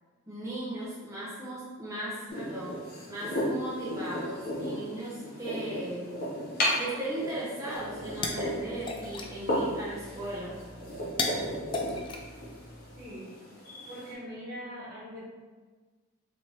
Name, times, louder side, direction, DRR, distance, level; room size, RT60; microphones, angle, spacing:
voice 1, 0.3-6.2 6.8-10.7, right 1 dB, 15° right, -11 dB, 0.8 m, -37 dB
Wooden Rolling Pin on Marble to Roll Roti, 2.3-14.1, equal, 45° left, 0.8 m, -35 dB
sound 1, 7.8-13.1, left 3 dB, 25° left, 0.3 m, -38 dB
voice 2, 12.9-13.3 13.9-15.3, equal, 45° right, -8 dB, 1.3 m, -41 dB
3.4 x 2.9 x 2.9 m, 1.4 s
head